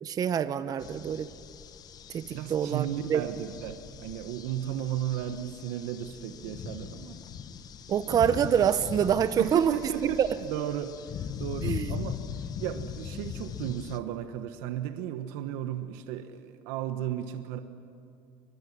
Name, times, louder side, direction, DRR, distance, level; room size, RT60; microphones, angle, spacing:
voice 1, 0.0-1.3 2.1-3.2 7.9-9.7 10.2-10.3 11.6-11.9, right 8 dB, 35° right, 12 dB, 0.8 m, -26 dB
sound 1, 0.8-14.0, left 8 dB, 40° left, 1.0 m, -40 dB
voice 2, 2.3-7.2 9.4-10.2 10.5-12.2 12.6-17.6, right 11 dB, 85° right, 8 dB, 1.3 m, -34 dB
23.5 x 23.5 x 9.9 m, 2.4 s
cardioid pair, 130°, 11 cm